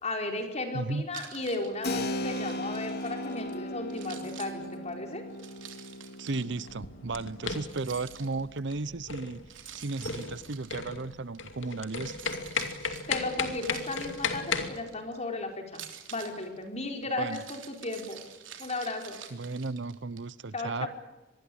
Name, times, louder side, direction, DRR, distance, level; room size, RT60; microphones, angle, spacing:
voice 1, 0.0-5.3 13.1-15.8 16.1-18.2 18.6-19.2 20.5-20.9, left 2 dB, 35° left, 3 dB, 4.8 m, -35 dB
Keys jangling, 1.1-3.6 3.9-6.7 7.4-8.6 9.5-11.4 11.8-15.2 15.7-20.2, right 9 dB, 90° right, 3.4 m, -48 dB
Keyboard (musical), 1.8-10.2, left 1 dB, 60° left, 2.5 m, -38 dB
voice 2, 6.2-12.2 17.2-17.4 19.3-20.9, right 3 dB, 65° right, 18 dB, 0.8 m, -35 dB
sound 1, 6.7-14.7, left 5 dB, 80° left, 2.6 m, -35 dB
25.0 x 21.0 x 8.7 m, 1.1 s
head